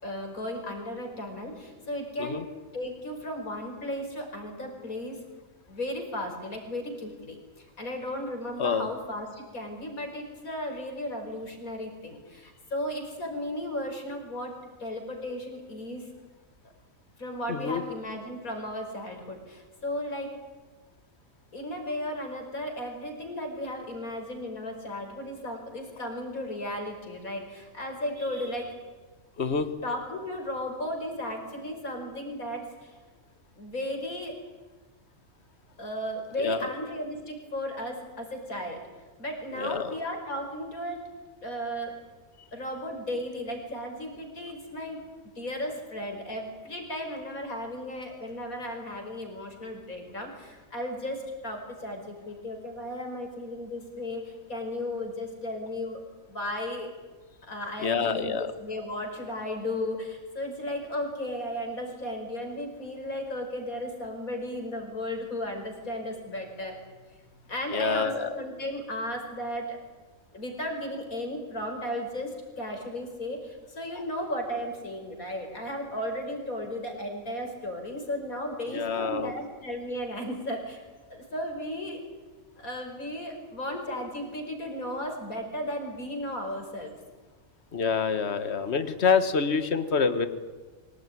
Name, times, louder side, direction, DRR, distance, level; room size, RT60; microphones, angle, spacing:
voice 1, 0.0-5.2 5.7-16.1 17.2-20.4 21.5-28.8 29.8-32.9 33.6-34.4 35.8-38.8 39.2-41.0 41.4-42.0 42.5-45.0 45.4-56.0 56.3-56.9 57.4-66.7 67.5-69.8 70.3-80.8 81.1-82.0 82.6-86.9, left 1 dB, 80° left, 3 dB, 5.6 m, -35 dB
voice 2, 8.6-8.9 17.5-17.8 29.4-29.7 36.4-36.7 39.6-39.9 57.8-58.5 67.7-68.4 78.7-79.3 87.7-90.3, left 5 dB, 50° left, 10 dB, 1.7 m, -27 dB
25.0 x 18.0 x 9.8 m, 1.3 s
omnidirectional pair, 1.5 m